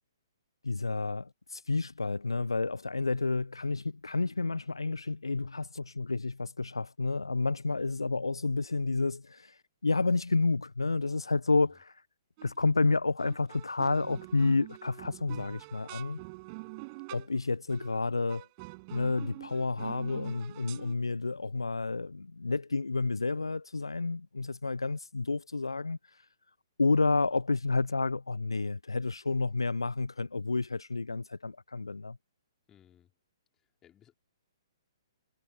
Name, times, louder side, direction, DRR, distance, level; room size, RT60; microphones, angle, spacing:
voice 1, 0.6-11.9 12.4-16.2 17.1-18.5 18.9-26.0 26.8-32.2, left 3 dB, 75° left, 1.0 m, -30 dB
sound 1, 12.4-12.8 13.2-17.4 17.7-18.0 18.3-21.0, right 28 dB, 30° right, 6.4 m, -46 dB
voice 2, 32.7-33.1 33.5-34.1, left 10 dB, 15° left, 5.0 m, -62 dB
figure-of-eight pair, 125°, 3 cm